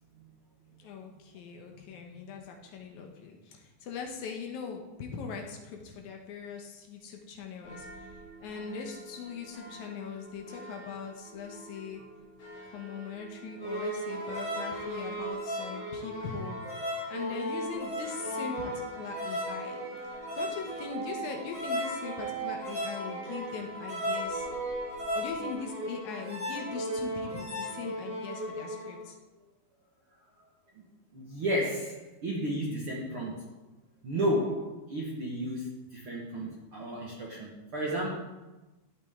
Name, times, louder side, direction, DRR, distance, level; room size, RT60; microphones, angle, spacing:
voice 1, 0.8-8.1 8.4-12.0 12.6-19.8 20.0-24.5 25.1-29.1, left 5 dB, 85° left, 2 dB, 1.7 m, -41 dB
voice 2, 1.6-2.2 12.0-12.1 30.7-30.8 31.1-33.5 34.0-38.2, equal, 75° right, -4 dB, 1.2 m, -33 dB
sound 1, 7.6-25.5, right 1 dB, 55° left, 5.4 m, -50 dB
sound 2, 13.6-29.0, equal, 5° right, 3.6 m, -35 dB
14.0 x 8.6 x 3.7 m, 1.1 s
omnidirectional pair, 5.0 m